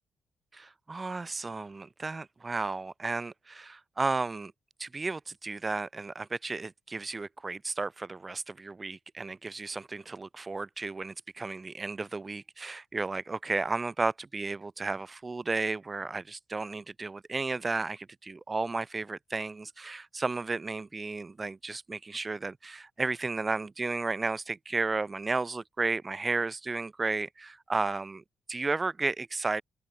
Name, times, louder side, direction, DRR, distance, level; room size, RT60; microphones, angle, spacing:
voice 1, 0.5-4.5 4.8-29.6, right 3 dB, 25° right, 3.6 m, -33 dB
cardioid pair, 120°, 0 cm